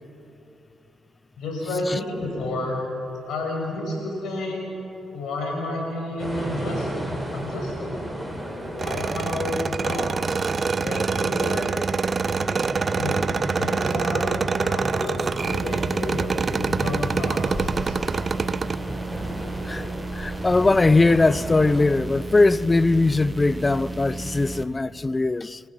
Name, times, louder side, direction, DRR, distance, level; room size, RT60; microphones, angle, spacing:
voice 1, 1.4-2.8 3.2-4.8 5.1-8.0 8.7-10.3 10.7-11.7 12.8-18.0, left 1 dB, 75° left, 6.5 m, -31 dB
sound 1, 6.2-21.8, right 1 dB, 5° right, 5.5 m, -34 dB
sound 2, 8.8-18.8, right 5 dB, 45° right, 0.6 m, -26 dB
sound 3, 15.5-24.6, right 3 dB, 25° right, 1.4 m, -34 dB
voice 2, 20.1-25.6, left 3 dB, 25° left, 0.6 m, -20 dB
29.5 x 15.5 x 6.1 m
supercardioid pair, 55°, 0 cm